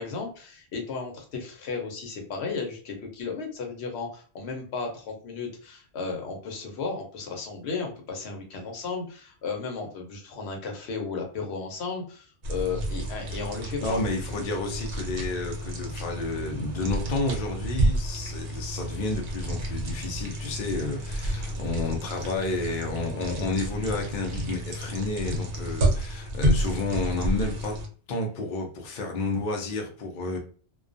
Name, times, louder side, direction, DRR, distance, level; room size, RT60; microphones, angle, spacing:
voice 1, 0.0-14.0 21.4-21.7, left 4 dB, 85° left, 2 dB, 1.0 m, -34 dB
sound 1, 12.4-27.9, right 1 dB, 70° right, 0.9 m, -30 dB
voice 2, 13.8-27.8 28.1-30.4, left 3 dB, 60° left, 2 dB, 0.7 m, -31 dB
2.3 x 2.1 x 2.5 m, 0.42 s
omnidirectional pair, 1.1 m